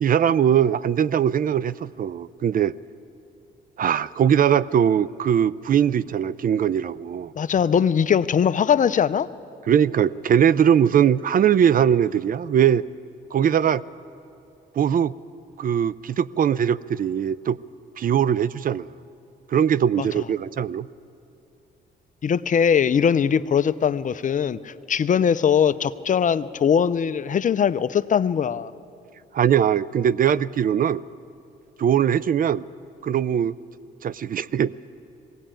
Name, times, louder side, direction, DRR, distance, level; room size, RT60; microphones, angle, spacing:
voice 1, 0.0-2.7 3.8-7.3 9.7-12.8 13.3-13.8 14.8-15.1 15.6-17.6 18.0-18.9 19.5-20.9 29.3-31.0 31.8-32.6 33.0-33.6 34.0-34.7, right 9 dB, 45° right, 18 dB, 0.4 m, -21 dB
voice 2, 7.4-9.3 20.0-20.1 22.2-28.7, left 7 dB, 40° left, 14 dB, 0.5 m, -21 dB
19.5 x 17.0 x 8.9 m, 2.7 s
cardioid pair, 90°, 20 cm